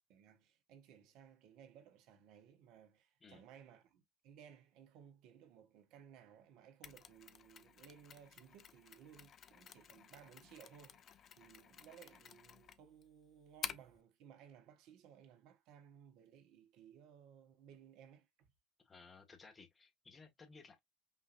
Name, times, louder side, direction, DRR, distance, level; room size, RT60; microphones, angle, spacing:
voice 1, 0.1-18.5, right 8 dB, 70° right, 1.0 m, -60 dB
Mechanisms, 6.8-14.0, left 8 dB, 50° left, 0.5 m, -52 dB
voice 2, 18.8-20.8, left 4 dB, 30° left, 1.4 m, -59 dB
5.5 x 2.6 x 2.4 m
hypercardioid pair, 60°, 0 cm